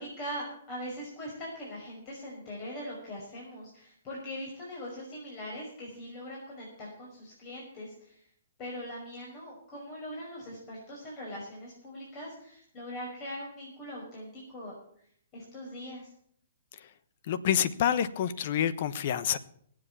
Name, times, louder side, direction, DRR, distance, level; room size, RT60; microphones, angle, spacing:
voice 1, 0.0-8.2 8.6-14.7 15.3-16.1, equal, 35° left, -4 dB, 5.6 m, -41 dB
voice 2, 17.3-19.4, left 9 dB, 50° left, 14 dB, 1.0 m, -27 dB
19.0 x 7.7 x 6.9 m, 0.64 s
hypercardioid pair, 125°, 0 cm